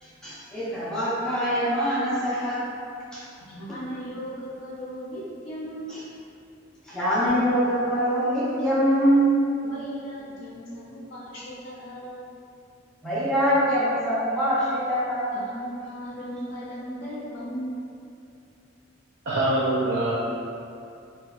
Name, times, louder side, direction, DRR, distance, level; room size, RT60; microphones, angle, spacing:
voice 1, 0.0-2.6 3.1-3.2 5.9-6.0 6.8-9.4 13.0-15.3, equal, 5° left, -11 dB, 0.5 m, -24 dB
voice 2, 3.5-6.0 9.6-12.3 15.3-17.9, equal, 60° left, -8 dB, 0.4 m, -37 dB
voice 3, 19.3-20.1, right 1 dB, 65° right, -9 dB, 0.4 m, -23 dB
2.7 x 2.1 x 2.3 m, 2.6 s
head